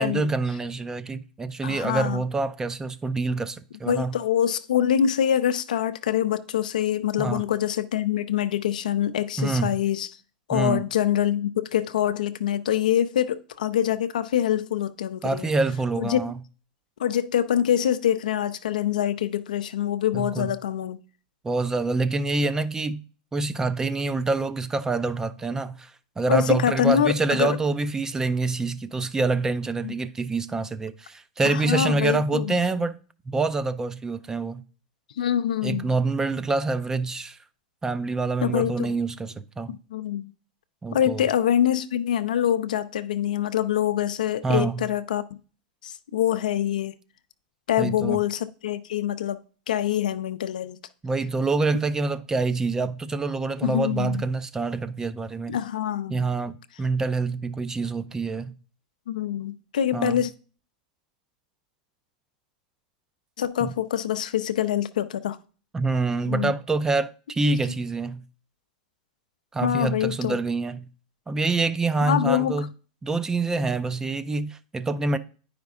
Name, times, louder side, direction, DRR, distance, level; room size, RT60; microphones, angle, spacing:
voice 1, 0.0-4.1 7.2-7.4 9.4-9.8 10.5-10.9 15.2-16.3 20.1-20.5 21.4-23.0 23.3-25.9 26.2-33.0 33.3-34.6 35.6-37.4 37.8-39.8 40.8-41.2 44.4-44.9 47.8-48.2 51.0-55.6 56.1-58.5 59.9-60.2 63.6-63.7 65.7-68.2 69.5-70.9 71.3-72.7 73.0-75.2, right 3 dB, 15° right, 0.5 m, -26 dB
voice 2, 1.6-2.2 3.9-10.1 10.5-15.5 16.0-16.2 17.0-21.0 26.3-27.6 29.8-29.9 31.4-32.5 35.2-35.9 38.4-38.9 39.7-40.3 40.9-45.2 45.8-46.9 47.7-49.4 49.7-50.8 53.6-54.2 55.5-56.3 59.1-60.3 63.4-65.4 66.3-66.5 69.6-70.4 72.0-72.7, left 10 dB, 80° left, 0.5 m, -25 dB
9.5 x 5.1 x 3.6 m
hypercardioid pair, 110°, 4 cm